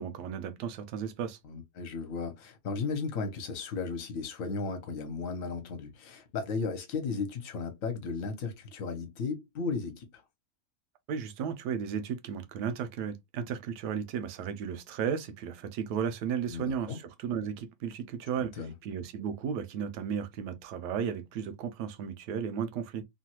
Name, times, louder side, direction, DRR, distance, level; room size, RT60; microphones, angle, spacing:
voice 1, 0.0-1.4 11.1-18.5 18.8-23.0, right 7 dB, 80° right, 1.2 m, -34 dB
voice 2, 1.4-10.2 16.5-17.0 18.4-18.7, left 4 dB, 60° left, 1.1 m, -35 dB
3.1 x 2.2 x 2.8 m
omnidirectional pair, 1.8 m